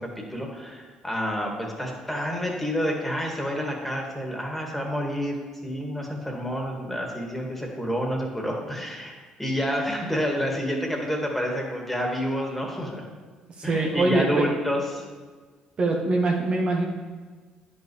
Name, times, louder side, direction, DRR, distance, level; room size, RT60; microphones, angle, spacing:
voice 1, 0.0-5.4 5.6-13.1 13.6-15.0, equal, 5° left, 0 dB, 2.0 m, -29 dB
voice 2, 13.6-14.5 15.8-16.9, right 2 dB, 45° right, -1 dB, 1.1 m, -23 dB
10.0 x 5.5 x 3.2 m, 1.4 s
supercardioid pair, 60°, 3 cm